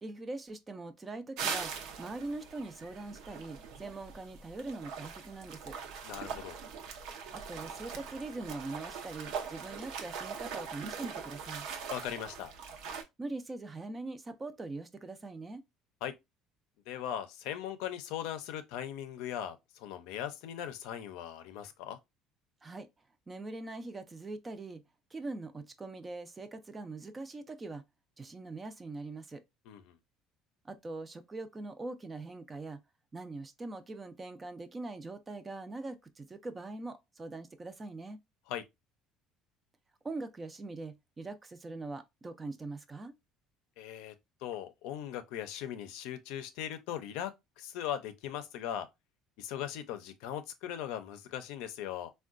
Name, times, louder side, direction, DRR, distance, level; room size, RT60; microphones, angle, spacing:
voice 1, 0.0-1.7 2.0-5.8 7.3-11.7 13.2-15.6 22.6-22.9 23.3-24.8 25.1-27.8 28.2-29.4 30.6-32.8 33.1-38.2 40.0-43.1, right 2 dB, 20° right, 0.4 m, -42 dB
sound 1, 1.4-13.0, right 6 dB, 70° right, 0.6 m, -41 dB
voice 2, 6.0-6.6 11.9-12.5 16.0-16.1 16.9-22.0 29.7-29.9 38.5-38.6 43.8-44.1 44.4-47.3 47.6-48.9 49.4-52.1, left 10 dB, 80° left, 0.5 m, -39 dB
3.6 x 2.2 x 2.4 m
cardioid pair, 145°, 0 cm